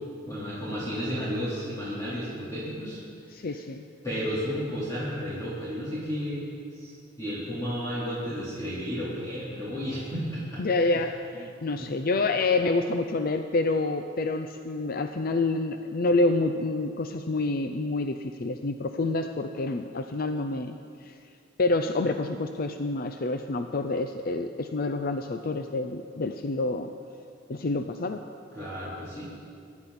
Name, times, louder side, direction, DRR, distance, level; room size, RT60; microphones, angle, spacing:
voice 1, 0.2-3.0 4.0-6.5 6.7-10.6 11.7-11.9 28.5-29.3, equal, 20° left, -11 dB, 3.9 m, -32 dB
voice 2, 3.3-3.8 10.6-20.8 21.0-21.1 21.6-26.9 27.5-28.2, left 2 dB, 50° left, 7 dB, 0.5 m, -28 dB
24.0 x 11.5 x 4.3 m, 2.3 s
head